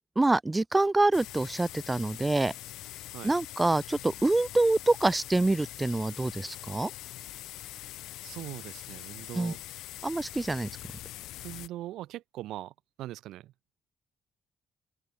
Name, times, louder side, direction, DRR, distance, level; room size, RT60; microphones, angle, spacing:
voice 1, 0.2-2.5 3.2-6.9 9.3-9.5 10.0-10.7, right 2 dB, 15° right, 0.4 m, -26 dB
sound 1, 1.1-11.7, left 15 dB, 90° left, 1.6 m, -43 dB
voice 2, 8.2-9.6 11.4-13.5, right 14 dB, 85° right, 0.9 m, -41 dB
open air
cardioid pair, 90°, 0 cm